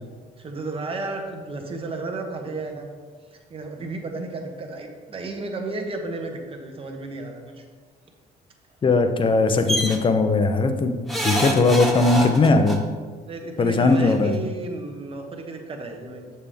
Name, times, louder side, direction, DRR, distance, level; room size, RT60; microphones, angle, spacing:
voice 1, 0.4-2.9 3.3-7.6 13.3-16.3, right 3 dB, 35° right, 3 dB, 1.2 m, -33 dB
voice 2, 8.8-11.0 11.2-12.8 13.6-14.3, left 3 dB, 30° left, 7 dB, 0.7 m, -19 dB
sound 1, 9.7-10.0 11.1-12.8 14.0-14.1 14.3-14.4, equal, ahead, 1.1 m, -25 dB
7.4 x 7.0 x 3.4 m, 1.5 s
cardioid pair, 110°, 17 cm